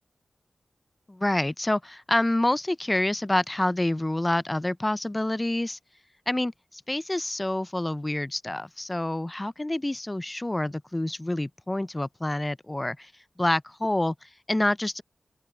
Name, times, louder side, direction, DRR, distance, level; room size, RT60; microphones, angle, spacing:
voice 1, 1.1-5.8 6.3-13.1 13.4-15.0, left 1 dB, 20° left, 0.4 m, -27 dB
open air
wide cardioid pair, 100°, 0 cm